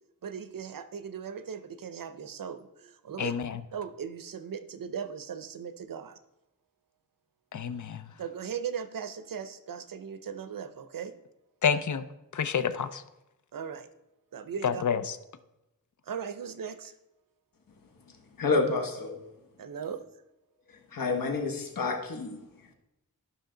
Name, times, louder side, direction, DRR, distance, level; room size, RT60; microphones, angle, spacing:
voice 1, 0.2-3.3 3.7-6.2 8.2-11.1 13.5-13.9 14.3-14.8 16.1-16.9 19.6-20.0, right 7 dB, 80° right, 10 dB, 0.7 m, -38 dB
voice 2, 3.2-3.6 7.5-8.1 11.6-12.0 12.3-13.0 14.6-15.2, left 7 dB, 60° left, 11 dB, 0.6 m, -28 dB
voice 3, 18.4-19.2 20.7-22.4, left 3 dB, 85° left, 4 dB, 1.3 m, -29 dB
12.0 x 5.7 x 3.9 m, 0.91 s
wide cardioid pair, 115°, 33 cm